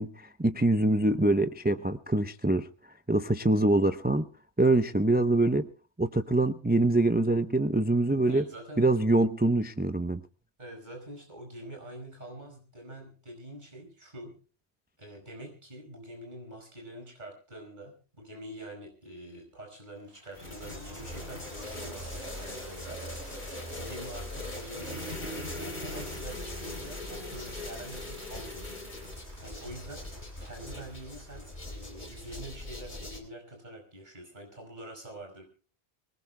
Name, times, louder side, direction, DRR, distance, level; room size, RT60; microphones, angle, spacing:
voice 1, 0.0-2.7 3.1-4.3 4.6-5.7 6.0-8.4 8.8-10.2, right 2 dB, 10° right, 10 dB, 0.5 m, -24 dB
voice 2, 8.3-8.8 10.6-14.4 15.0-23.3 23.8-28.7 29.4-30.1 30.4-35.4, right 1 dB, 45° right, 2 dB, 5.4 m, -45 dB
Applause, 20.0-33.2, right 1 dB, 85° right, 3.5 m, -55 dB
sound 1, 20.3-33.2, left 1 dB, 45° left, 3.9 m, -40 dB
25.0 x 19.5 x 2.2 m, 0.37 s
omnidirectional pair, 1.1 m